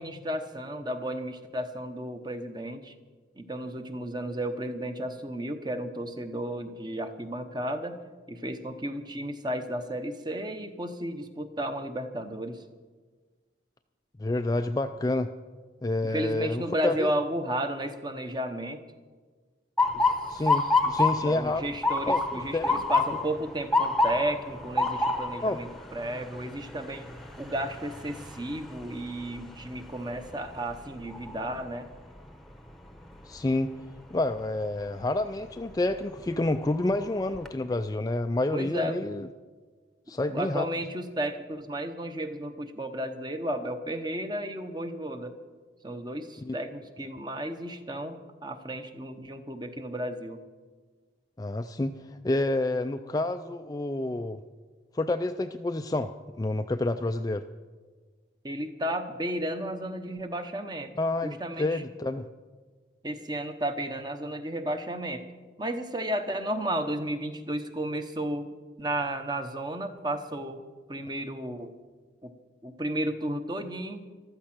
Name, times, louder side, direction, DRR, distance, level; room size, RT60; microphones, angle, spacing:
voice 1, 0.0-2.9 3.4-8.0 8.3-12.6 16.0-18.8 19.9-20.9 21.2-27.1 27.4-31.9 38.5-39.0 40.3-45.3 45.8-50.4 58.4-60.9 61.2-61.8 63.0-65.3 65.6-68.5 68.8-70.6 70.9-71.7 72.2-72.3 72.6-74.0, right 1 dB, 20° right, 8 dB, 0.9 m, -33 dB
voice 2, 14.2-15.3 15.8-17.1 20.3-21.7 22.1-22.9 25.4-25.6 33.3-33.8 34.1-39.3 40.1-40.7 46.4-46.5 51.4-54.4 54.9-57.5 61.0-62.3, left 2 dB, 20° left, 7 dB, 0.3 m, -29 dB
Motor vehicle (road) / Siren, 19.8-31.7 32.1-32.6 33.3-33.7 35.5-35.8 36.3-36.4 36.8-37.5, left 3 dB, ahead, 0.9 m, -29 dB
15.0 x 12.5 x 6.0 m, 1.4 s
head